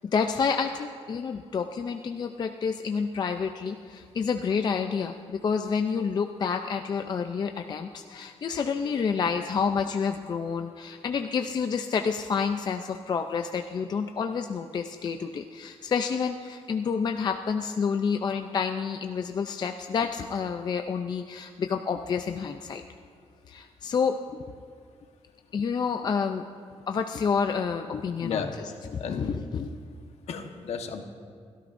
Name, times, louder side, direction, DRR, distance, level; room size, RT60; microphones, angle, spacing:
voice 1, 0.1-22.8 23.5-24.4 25.5-26.4 26.9-29.7, left 6 dB, 40° left, 5 dB, 0.5 m, -29 dB
voice 2, 28.2-28.6 29.0-29.3 30.3-31.0, left 6 dB, 65° left, 4 dB, 1.2 m, -33 dB
29.0 x 13.0 x 2.6 m, 2.1 s
wide cardioid pair, 160°, 11 cm